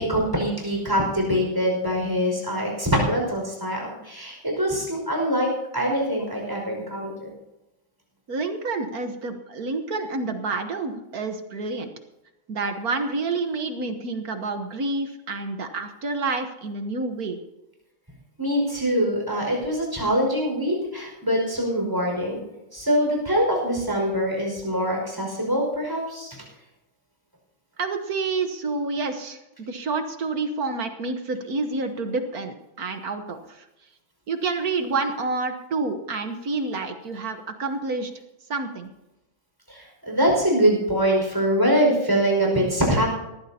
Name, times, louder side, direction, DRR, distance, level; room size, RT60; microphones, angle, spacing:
voice 1, 0.0-7.3 18.4-22.4 22.7-26.4 39.7-43.1, equal, 10° right, -1 dB, 5.3 m, -24 dB
voice 2, 8.3-11.9 12.5-17.4 27.8-33.6 34.3-38.1 38.5-38.9, right 3 dB, 50° right, 7 dB, 1.5 m, -28 dB
20.0 x 15.0 x 2.8 m, 0.96 s
omnidirectional pair, 2.2 m